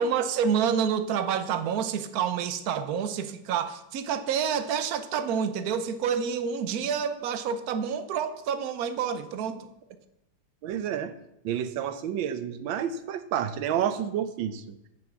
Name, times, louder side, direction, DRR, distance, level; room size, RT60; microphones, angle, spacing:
voice 1, 0.0-9.7, right 7 dB, 60° right, 10 dB, 1.1 m, -28 dB
voice 2, 10.6-11.1 11.4-14.7, right 9 dB, 80° right, 12 dB, 1.5 m, -30 dB
8.5 x 7.1 x 7.2 m, 0.84 s
omnidirectional pair, 2.1 m